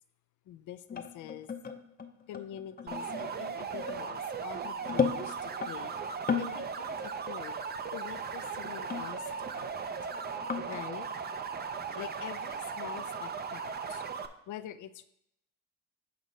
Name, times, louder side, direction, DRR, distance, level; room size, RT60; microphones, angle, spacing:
voice 1, 0.5-1.5 2.3-5.9 6.4-7.6 7.9-9.7 10.7-11.1 12.0-14.0 14.5-15.0, left 11 dB, 75° left, 12 dB, 0.5 m, -45 dB
sound 1, 0.9-5.7 6.1-6.6 6.9-7.2 7.5-7.6 8.6-9.8 10.0-10.8, left 6 dB, 30° left, 0.7 m, -35 dB
sound 2, 2.9-14.3, right 6 dB, 35° right, 0.6 m, -37 dB
8.1 x 5.0 x 3.9 m, 0.77 s
cardioid pair, 90°, 30 cm